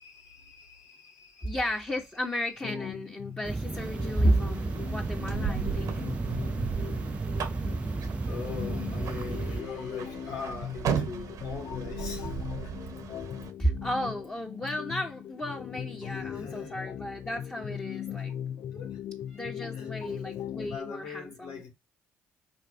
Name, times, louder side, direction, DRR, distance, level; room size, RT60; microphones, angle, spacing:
voice 1, 0.0-1.6 7.8-12.7 15.9-16.8 18.1-18.2 18.7-19.0 19.7-19.9 20.7-21.7, left 5 dB, 80° left, 2.3 m, -42 dB
voice 2, 1.4-5.9 13.6-18.3 19.3-21.6, equal, 20° left, 2.1 m, -32 dB
sound 1, 2.6-20.8, left 10 dB, 60° left, 0.5 m, -40 dB
sound 2, 3.4-9.6, right 3 dB, 20° right, 0.3 m, -33 dB
sound 3, 3.7-13.5, right 8 dB, 70° right, 1.6 m, -37 dB
5.7 x 3.5 x 5.1 m
supercardioid pair, 60°, 6 cm